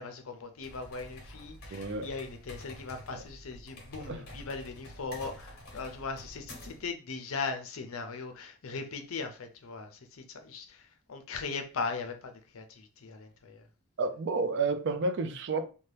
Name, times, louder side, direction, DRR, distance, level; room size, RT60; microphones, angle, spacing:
voice 1, 0.0-13.6, left 4 dB, 65° left, 0.5 m, -39 dB
sound 1, 0.6-6.9, left 1 dB, 45° left, 0.9 m, -48 dB
voice 2, 1.7-2.1 4.1-4.3 14.0-15.7, right 3 dB, 55° right, 0.4 m, -30 dB
2.8 x 2.2 x 3.2 m
head